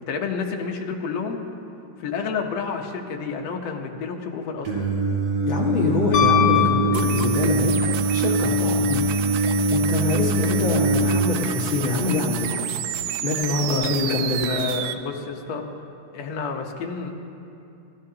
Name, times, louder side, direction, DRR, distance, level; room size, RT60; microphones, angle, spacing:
voice 1, 0.1-1.4 2.0-4.9 13.7-15.6 16.1-17.1, left 5 dB, 65° left, 2 dB, 1.9 m, -30 dB
Singing, 4.6-11.2, right 1 dB, 55° right, 2.9 m, -22 dB
voice 2, 5.4-9.0 9.7-12.6 13.2-14.5, left 3 dB, 45° left, -2 dB, 1.9 m, -25 dB
Piano, 6.1-7.7 10.1-10.2, left 11 dB, 80° left, 2.5 m, -22 dB
sound 1, 6.9-14.9, right 11 dB, 80° right, 1.7 m, -30 dB
30.0 x 12.5 x 2.9 m, 2.7 s
omnidirectional pair, 3.8 m